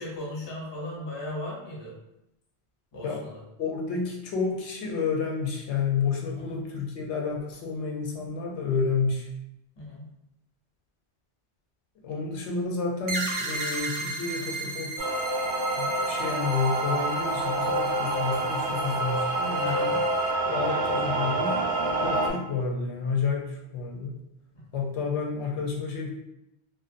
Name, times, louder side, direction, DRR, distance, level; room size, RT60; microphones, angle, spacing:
voice 1, 0.0-1.9 2.9-3.4 6.5-6.6 9.8-10.1 19.6-20.0 20.4-21.4 24.5-24.6, left 1 dB, 30° left, -4 dB, 0.6 m, -37 dB
voice 2, 3.6-9.3 12.0-15.1 15.8-20.0 20.5-21.5 22.0-24.2 24.7-26.1, left 5 dB, 85° left, 0 dB, 0.9 m, -30 dB
sound 1, 13.1-20.3, right 2 dB, 60° right, 0.6 m, -36 dB
sound 2, 15.0-22.3, right 2 dB, 85° right, 0.9 m, -27 dB
2.5 x 2.1 x 2.4 m, 0.85 s
omnidirectional pair, 1.1 m